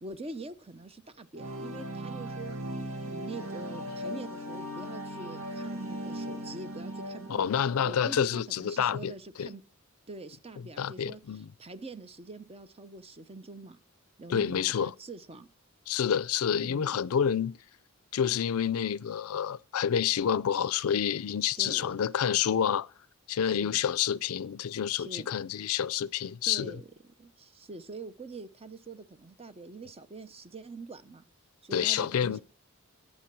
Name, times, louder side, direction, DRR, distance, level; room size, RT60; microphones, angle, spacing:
voice 1, 0.0-2.6 3.0-7.4 7.8-9.6 10.1-13.8 14.2-15.5 16.6-17.0 21.6-21.9 23.4-23.8 24.9-25.3 26.4-26.9 27.2-31.2 31.6-32.4, right 3 dB, 30° right, 0.7 m, -44 dB
sound 1, 1.4-8.3, equal, 65° right, 1.7 m, -38 dB
voice 2, 7.3-9.1 9.4-9.5 10.8-11.5 14.3-14.9 15.9-17.6 18.1-22.9 23.3-26.8 31.7-32.4, left 8 dB, 80° left, 0.4 m, -28 dB
11.5 x 7.5 x 6.1 m
head